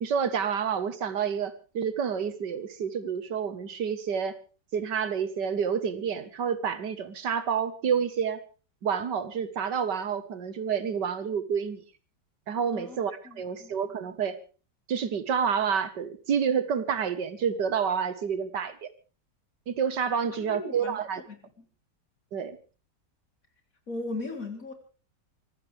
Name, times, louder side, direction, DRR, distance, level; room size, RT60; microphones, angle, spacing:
voice 1, 0.0-4.4 4.7-8.4 8.8-11.8 12.5-14.4 14.9-18.9 19.7-21.2 22.3-22.6, right 7 dB, 90° right, 13 dB, 2.1 m, -29 dB
voice 2, 13.2-13.7 20.5-21.0 21.3-21.4 23.9-24.7, left 2 dB, 50° left, 5 dB, 4.0 m, -37 dB
24.5 x 16.0 x 3.5 m, 0.36 s
omnidirectional pair, 1.8 m